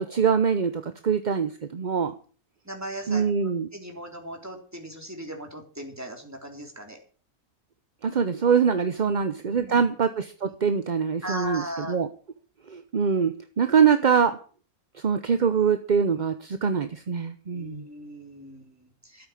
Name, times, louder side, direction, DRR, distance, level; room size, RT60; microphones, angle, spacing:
voice 1, 0.0-2.1 3.1-3.7 8.0-11.6 11.9-12.1 12.7-14.4 15.0-17.8, right 6 dB, 40° right, 9 dB, 0.7 m, -23 dB
voice 2, 2.7-3.3 3.7-7.0 9.0-9.9 10.4-10.5 11.2-12.0 17.5-19.3, equal, 10° right, 1 dB, 3.5 m, -38 dB
13.0 x 8.8 x 7.3 m, 0.41 s
omnidirectional pair, 1.5 m